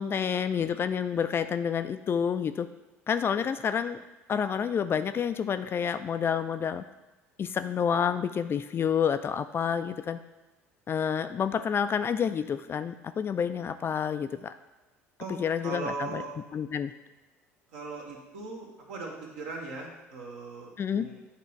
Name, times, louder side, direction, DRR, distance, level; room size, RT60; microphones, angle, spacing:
voice 1, 0.0-2.7 3.1-4.0 4.3-6.8 7.4-10.2 10.9-14.5 15.3-16.2 16.5-16.9 20.8-21.1, left 7 dB, 30° left, 10 dB, 0.4 m, -29 dB
voice 2, 15.6-16.3 17.7-21.2, right 3 dB, 65° right, -1 dB, 1.5 m, -39 dB
8.6 x 2.9 x 4.6 m, 1.1 s
figure-of-eight pair, 60°, 8 cm